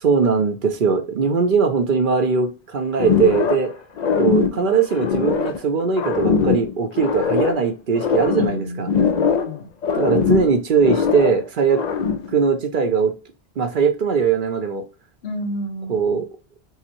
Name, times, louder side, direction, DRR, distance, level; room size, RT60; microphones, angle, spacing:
voice 1, 0.0-3.7 4.2-8.9 9.9-11.8 12.3-13.1 13.6-14.8 15.9-16.3, right 5 dB, 60° right, 0.7 m, -20 dB
sound 1, 3.0-3.7 4.0-5.6 6.0-7.6 7.9-9.6 9.8-11.4 11.7-12.3, left 6 dB, 55° left, 0.5 m, -21 dB
voice 2, 8.4-9.7 15.2-16.2, equal, 75° left, 1.1 m, -31 dB
5.6 x 2.0 x 2.8 m
omnidirectional pair, 1.1 m